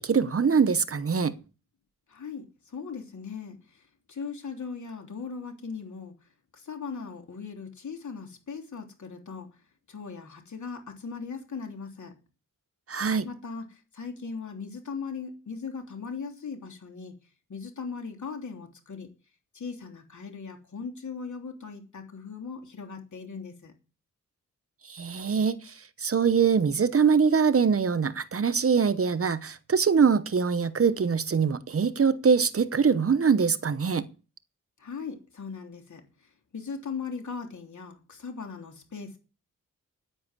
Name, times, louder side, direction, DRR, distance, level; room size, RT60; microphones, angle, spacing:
voice 1, 0.0-1.3 12.9-13.3 24.9-25.6 26.0-34.1, right 6 dB, 45° right, 1.0 m, -23 dB
voice 2, 2.1-3.6 4.1-6.1 6.5-9.5 9.9-12.1 13.2-17.1 17.5-19.1 19.5-23.7 34.8-36.0 36.5-39.2, left 5 dB, 65° left, 3.3 m, -38 dB
9.9 x 9.8 x 8.2 m
wide cardioid pair, 140°, 32 cm